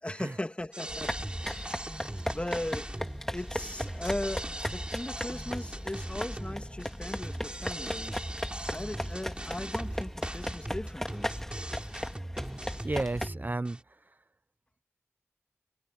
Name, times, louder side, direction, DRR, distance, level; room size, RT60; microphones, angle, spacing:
voice 1, 0.0-1.1 1.4-1.9 2.3-2.9 3.3-8.1 8.7-11.3, left 1 dB, 25° left, 2.8 m, -38 dB
sound 1, 0.7-13.8, right 1 dB, 20° right, 3.2 m, -40 dB
sound 2, 0.9-13.3, equal, 10° left, 2.2 m, -37 dB
voice 2, 12.8-13.8, right 2 dB, 40° right, 0.8 m, -33 dB
wide cardioid pair, 50°, 5 cm